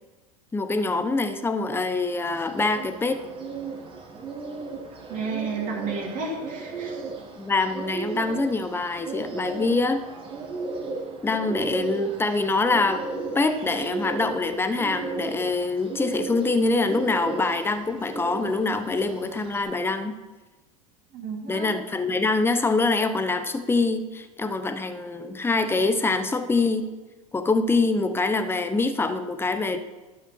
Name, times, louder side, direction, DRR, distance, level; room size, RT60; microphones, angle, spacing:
voice 1, 0.5-3.2 7.4-10.0 11.2-13.0 13.3-20.1 21.5-26.9 27.3-29.8, left 3 dB, 10° left, 9 dB, 0.9 m, -24 dB
Bird, 2.3-19.6, right 3 dB, 30° right, 2.1 m, -36 dB
voice 2, 5.1-7.1 21.1-21.7, right 4 dB, 45° right, -2 dB, 3.1 m, -32 dB
12.0 x 5.7 x 6.1 m, 1.2 s
hypercardioid pair, 95°, 19 cm